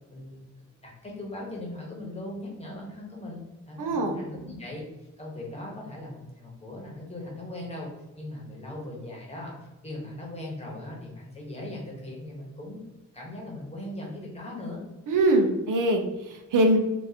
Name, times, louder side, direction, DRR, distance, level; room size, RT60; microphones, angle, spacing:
voice 1, 0.1-4.8 5.2-7.9 8.2-9.5 9.8-12.8 13.1-14.8, left 1 dB, 20° left, -2 dB, 1.1 m, -39 dB
voice 2, 3.8-4.1 15.1-16.8, right 1 dB, 75° right, 3 dB, 0.6 m, -23 dB
3.7 x 2.6 x 2.8 m, 1.0 s
cardioid pair, 100°, 32 cm